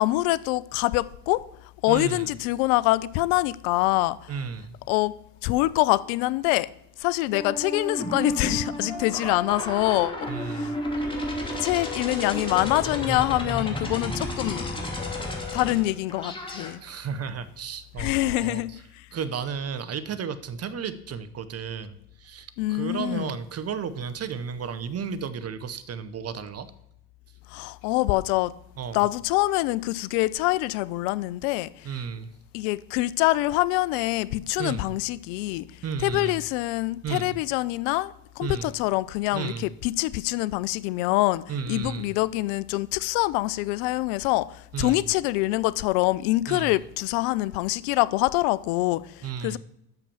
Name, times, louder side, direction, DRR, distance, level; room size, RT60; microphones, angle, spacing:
voice 1, 0.0-1.5 1.8-4.3 4.9-5.1 5.4-6.7 7.0-10.7 11.6-14.7 15.5-16.8 18.0-18.8 22.6-23.4 27.5-28.5 28.9-31.9 32.5-35.6 36.0-41.4 41.7-49.6, left 19 dB, 65° left, 0.5 m, -25 dB
voice 2, 1.9-2.3 4.3-4.7 10.3-10.7 16.8-18.8 19.1-26.7 28.8-29.0 31.8-32.3 34.6-34.9 35.8-36.4 37.0-37.4 38.4-38.7 39.3-39.7 41.5-42.1 44.7-45.0 46.5-46.7 49.2-49.6, right 6 dB, 35° right, 0.8 m, -33 dB
sound 1, 7.3-16.7, left 1 dB, 10° left, 2.6 m, -32 dB
6.6 x 5.9 x 7.1 m
hypercardioid pair, 70°, 44 cm